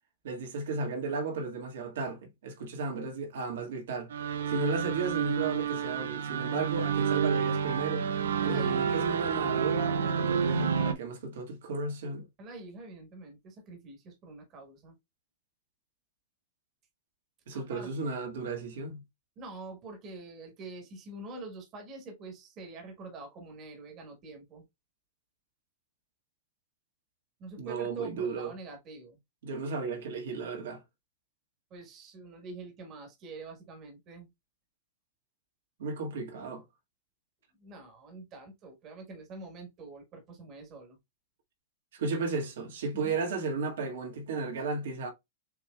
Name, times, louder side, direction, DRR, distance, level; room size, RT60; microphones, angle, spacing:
voice 1, 0.2-8.1 8.4-12.3 17.5-19.0 27.6-28.5 29.4-30.8 35.8-36.6 41.9-45.1, right 3 dB, 65° right, 1.7 m, -34 dB
sound 1, 4.1-10.9, right 7 dB, 85° right, 0.7 m, -29 dB
voice 2, 8.4-8.9 12.4-15.0 17.5-18.1 19.4-24.7 27.4-29.2 31.7-34.3 37.6-41.0 43.0-43.1, right 3 dB, 20° right, 1.4 m, -45 dB
6.7 x 3.2 x 2.3 m
supercardioid pair, 180°, 0 cm